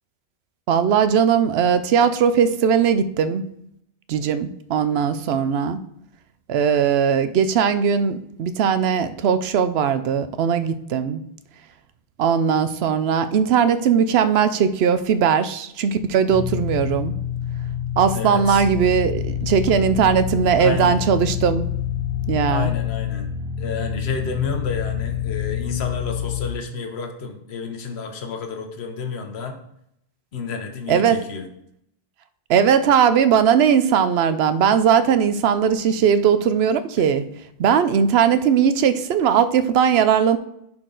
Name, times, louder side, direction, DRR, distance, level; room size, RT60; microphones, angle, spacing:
voice 1, 0.7-3.5 4.1-5.8 6.5-11.2 12.2-17.1 18.0-21.7 22.3-22.7 30.9-31.2 32.5-37.2 37.6-40.4, right 7 dB, 80° right, 12 dB, 0.9 m, -19 dB
sound 1, 16.3-26.5, left 9 dB, 25° right, 1.4 m, -27 dB
voice 2, 18.1-18.7 20.6-21.1 22.5-23.3 23.6-29.6 30.3-31.5, left 5 dB, 80° left, 5 dB, 1.2 m, -30 dB
10.5 x 4.3 x 3.9 m, 0.76 s
omnidirectional pair, 1.1 m